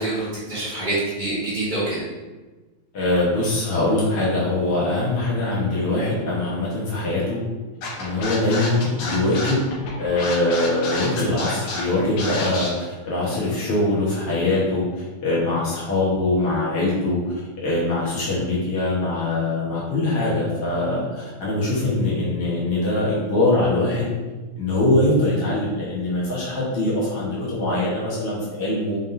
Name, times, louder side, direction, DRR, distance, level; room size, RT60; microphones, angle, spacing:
voice 1, 0.0-2.0, right 2 dB, 30° right, -10 dB, 0.8 m, -26 dB
voice 2, 2.9-7.4 8.0-9.6 10.0-17.2 17.6-24.1 24.6-29.0, left 2 dB, 60° left, -7 dB, 1.9 m, -22 dB
Scratching (performance technique), 7.8-12.7, left 3 dB, 80° left, 2.3 m, -29 dB
5.5 x 3.6 x 2.6 m, 1.2 s
omnidirectional pair, 3.4 m